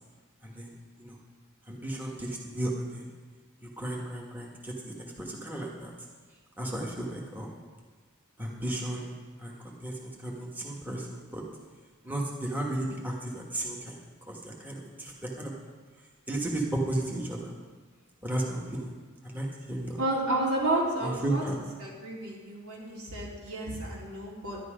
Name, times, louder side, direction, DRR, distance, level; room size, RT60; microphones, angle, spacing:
voice 1, 1.7-3.1 3.6-5.9 6.6-7.6 8.4-11.4 12.0-14.0 14.3-15.5 16.3-17.5 18.2-18.9 19.2-20.0 21.0-21.5, right 1 dB, 10° right, -2 dB, 1.5 m, -34 dB
voice 2, 20.0-21.4 21.8-24.6, right 2 dB, 85° right, -4 dB, 3.6 m, -31 dB
11.0 x 11.0 x 5.1 m, 1.4 s
head